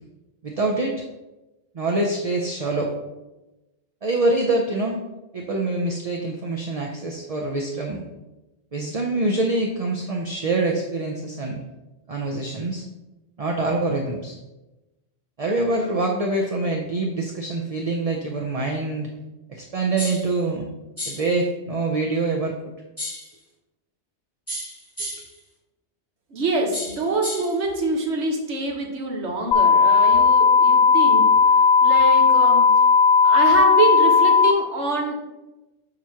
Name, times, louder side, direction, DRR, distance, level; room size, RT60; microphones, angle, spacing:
voice 1, 0.4-1.0 1.7-2.9 4.0-5.0 5.3-8.0 8.7-11.6 12.1-12.8 13.4-14.4 15.4-19.1 19.5-20.7 21.0-22.6, right 2 dB, 40° right, 1 dB, 0.6 m, -25 dB
sound 1, 20.0-20.3 21.0-21.3 23.0-23.3 24.5-25.4 26.7-27.6, left 1 dB, 10° left, 2.1 m, -33 dB
voice 2, 26.3-31.3 31.8-32.7 33.2-35.1, right 2 dB, 70° right, 1 dB, 1.5 m, -25 dB
sound 2, 29.5-34.5, left 5 dB, 55° left, 0.5 m, -15 dB
7.1 x 3.1 x 5.7 m, 1.0 s
omnidirectional pair, 1.2 m